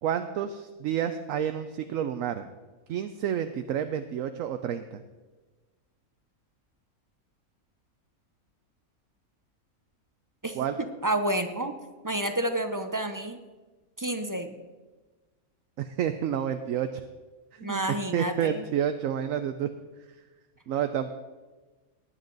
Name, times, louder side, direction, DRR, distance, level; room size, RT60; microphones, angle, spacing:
voice 1, 0.0-2.5 2.9-5.0 10.5-10.7 15.8-17.0 17.5-17.8 18.1-19.7 20.7-21.1, right 9 dB, 70° right, 8 dB, 1.0 m, -29 dB
voice 2, 11.0-11.7 12.0-13.4 14.0-14.6 17.6-18.7, right 1 dB, 20° right, 7 dB, 0.5 m, -29 dB
18.0 x 9.6 x 4.0 m, 1.3 s
omnidirectional pair, 1.5 m